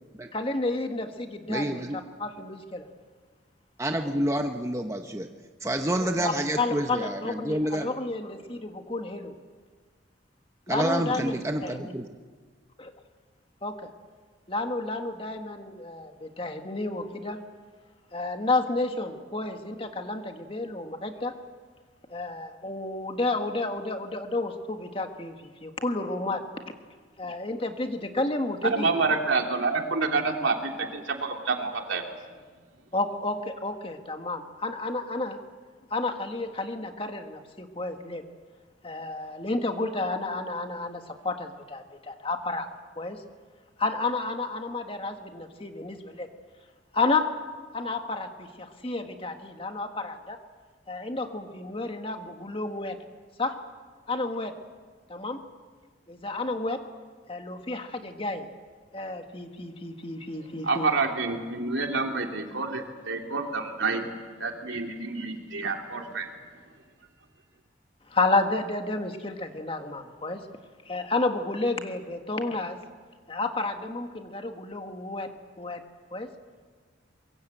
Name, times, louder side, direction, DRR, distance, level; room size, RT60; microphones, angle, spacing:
voice 1, 0.3-1.8 2.2-2.9 4.0-4.2 6.0-9.3 10.7-11.9 12.8-12.9 13.6-13.9 14.5-17.4 18.1-21.3 22.1-26.5 27.2-29.0 32.9-35.4 35.9-38.2 38.8-42.7 43.0-43.2 43.8-46.3 46.9-47.3 47.7-50.4 50.9-53.0 53.4-53.6 54.1-54.6 55.1-55.4 56.1-56.9 57.3-58.5 58.9-60.9 68.1-70.4 70.8-72.8 73.3-75.3 75.6-75.8 76.1-76.3, left 2 dB, 30° left, 5 dB, 1.6 m, -31 dB
voice 2, 1.5-2.0 3.8-5.3 5.6-7.9 10.7-12.0, right 1 dB, 15° right, 5 dB, 0.9 m, -28 dB
voice 3, 28.6-32.0 60.6-64.0 64.4-66.3, right 4 dB, 80° right, 2 dB, 3.0 m, -28 dB
24.5 x 22.5 x 7.8 m, 1.5 s
head